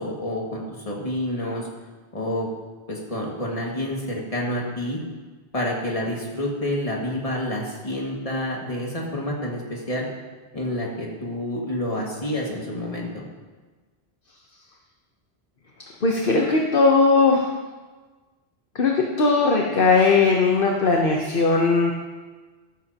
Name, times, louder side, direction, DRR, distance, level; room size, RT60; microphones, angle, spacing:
voice 1, 0.0-1.7 2.1-2.5 2.9-5.0 5.5-10.1 10.5-13.2, left 1 dB, 35° left, -2 dB, 2.2 m, -28 dB
voice 2, 16.0-17.5 18.7-21.9, left 4 dB, 55° left, 0 dB, 1.2 m, -19 dB
14.0 x 12.5 x 2.9 m, 1.3 s
omnidirectional pair, 1.1 m